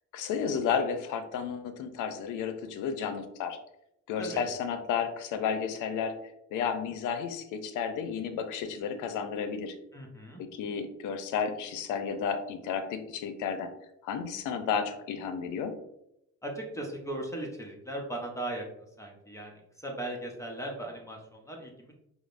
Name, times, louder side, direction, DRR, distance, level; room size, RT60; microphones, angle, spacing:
voice 1, 0.1-3.6 4.1-6.1 6.5-9.7 10.4-13.7 14.0-15.7, left 7 dB, 90° left, 8 dB, 0.5 m, -32 dB
voice 2, 9.9-10.4 16.4-18.6 19.0-19.5 19.8-22.0, right 1 dB, 10° left, 0 dB, 0.7 m, -38 dB
5.0 x 2.0 x 2.4 m, 0.80 s
cardioid pair, 90°, 30 cm